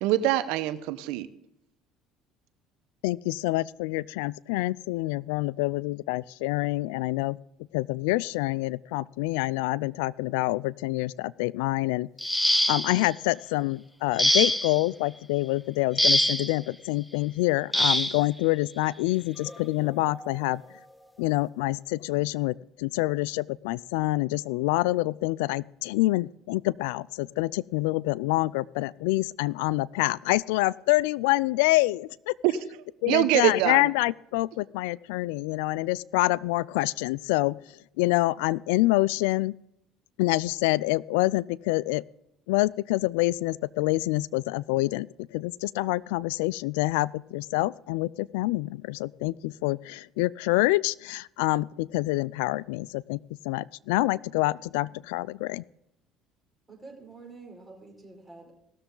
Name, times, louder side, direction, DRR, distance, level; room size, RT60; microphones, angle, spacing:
voice 1, 0.0-1.3 32.4-32.5 33.1-33.9, right 14 dB, 80° right, 13 dB, 0.9 m, -24 dB
voice 2, 3.0-7.4 7.7-12.1 12.7-20.6 21.2-32.3 33.0-39.5 40.2-42.0 42.5-53.2 53.4-55.6, left 20 dB, 90° left, 22 dB, 0.3 m, -27 dB
sound 1, 12.2-13.1 14.2-14.8 16.0-16.6 17.7-18.2 19.4-19.5 20.1-20.3, equal, 5° left, 0.8 m, -24 dB
voice 3, 56.7-58.5, right 3 dB, 15° right, -1 dB, 4.8 m, -47 dB
18.5 x 6.9 x 3.8 m, 0.81 s
supercardioid pair, 95°, 0 cm